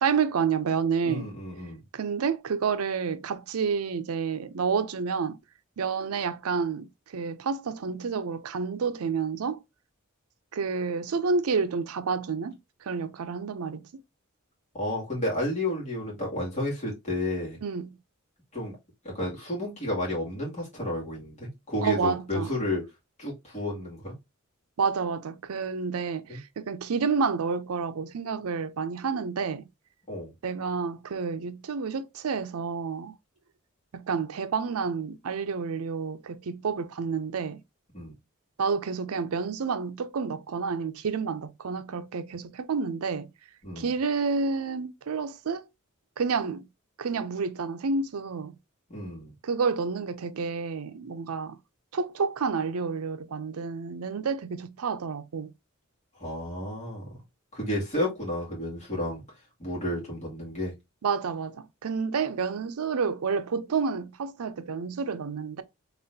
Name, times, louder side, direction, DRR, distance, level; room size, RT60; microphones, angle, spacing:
voice 1, 0.0-1.3 1.9-5.4 5.8-9.6 10.5-13.8 17.6-18.0 21.8-22.5 24.8-29.7 30.4-33.1 33.9-37.6 38.6-43.3 43.8-45.6 46.2-46.7 47.0-48.5 49.4-51.6 51.9-55.5 61.0-65.6, right 5 dB, 85° right, 0.5 m, -29 dB
voice 2, 1.0-1.8 14.7-17.6 18.5-18.8 19.0-22.8 23.2-24.2 26.3-26.4 30.1-30.3 37.9-38.1 43.6-43.9 48.9-49.3 56.2-57.2 57.5-59.2 59.6-60.7, left 1 dB, 35° left, 2.2 m, -31 dB
4.1 x 3.6 x 2.7 m
head